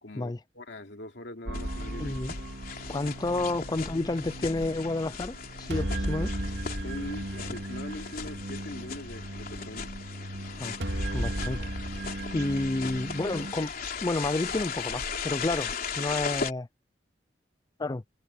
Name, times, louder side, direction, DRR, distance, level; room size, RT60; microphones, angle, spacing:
voice 1, 0.0-2.3 6.8-9.9, left 1 dB, 75° left, 2.9 m, -42 dB
sound 1, 1.5-16.5, left 5 dB, 55° left, 3.7 m, -38 dB
sound 2, 1.5-13.5, right 1 dB, 75° right, 2.4 m, -36 dB
voice 2, 2.0-2.3 2.9-6.3 10.6-10.7 11.1-11.6 12.3-13.7 14.0-16.7 17.8-18.0, left 2 dB, 25° left, 0.4 m, -30 dB
head